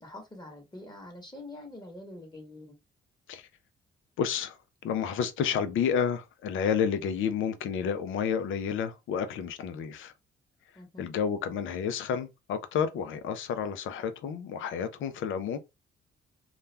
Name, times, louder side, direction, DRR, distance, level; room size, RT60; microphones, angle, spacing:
voice 1, 0.0-2.7 10.7-11.1, left 1 dB, 20° left, 1.1 m, -45 dB
voice 2, 4.2-4.6 4.8-10.1 11.0-15.6, left 7 dB, 75° left, 0.5 m, -30 dB
2.4 x 2.2 x 3.2 m
supercardioid pair, 70°, 21 cm